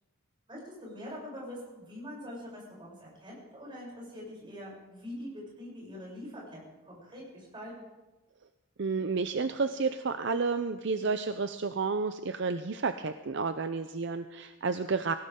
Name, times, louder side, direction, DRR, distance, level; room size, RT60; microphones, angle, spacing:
voice 1, 0.5-6.6 6.8-7.7, equal, 25° right, -5 dB, 7.9 m, -44 dB
voice 2, 8.8-15.1, right 4 dB, 55° right, 9 dB, 0.6 m, -31 dB
20.0 x 17.5 x 3.8 m, 1.1 s
head